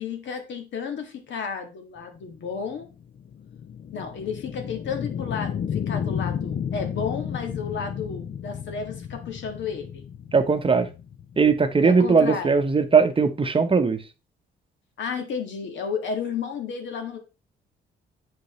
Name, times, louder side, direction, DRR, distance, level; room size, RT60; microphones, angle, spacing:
voice 1, 0.0-2.9 3.9-10.1 11.8-12.5 15.0-17.2, left 6 dB, 70° left, 1.7 m, -32 dB
sound 1, 2.2-12.9, left 8 dB, 50° left, 0.5 m, -33 dB
voice 2, 10.3-10.9 11.4-14.0, right 5 dB, 25° right, 0.8 m, -19 dB
7.4 x 5.3 x 3.1 m
cardioid pair, 90°, 20 cm